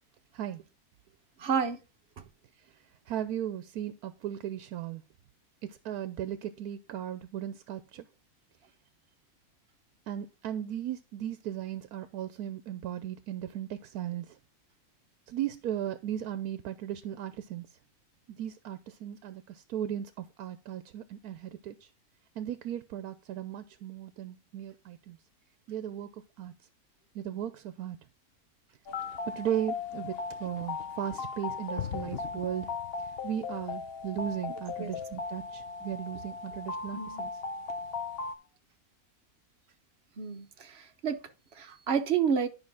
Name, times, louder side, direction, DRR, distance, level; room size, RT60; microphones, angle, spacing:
voice 1, 1.4-1.8 2.2-2.3 34.8-34.9 36.9-37.2 40.2-41.2 41.5-42.5, right 7 dB, 50° right, 1.0 m, -30 dB
voice 2, 3.1-5.0 5.6-8.1 10.1-14.4 15.3-17.7 18.3-21.9 22.4-25.2 25.7-26.5 27.1-28.0 29.3-32.7 33.2-37.3, right 10 dB, 85° right, 1.1 m, -36 dB
sound 1, 28.9-38.3, left 5 dB, 50° left, 0.8 m, -37 dB
11.0 x 5.3 x 3.4 m
omnidirectional pair, 1.6 m